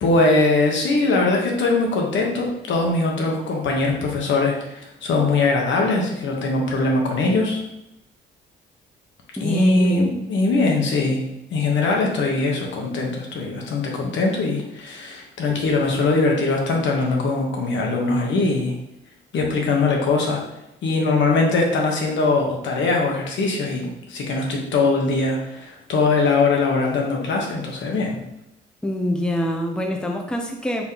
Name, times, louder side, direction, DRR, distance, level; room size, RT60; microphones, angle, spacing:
voice 1, 0.0-7.6 9.4-11.2 11.5-18.7 19.3-20.4 20.8-28.2, left 3 dB, 70° left, 0 dB, 1.1 m, -21 dB
voice 2, 9.4-10.2 28.8-30.8, left 1 dB, 5° left, 2 dB, 0.6 m, -25 dB
4.4 x 3.6 x 2.8 m, 0.85 s
cardioid pair, 90°, 20 cm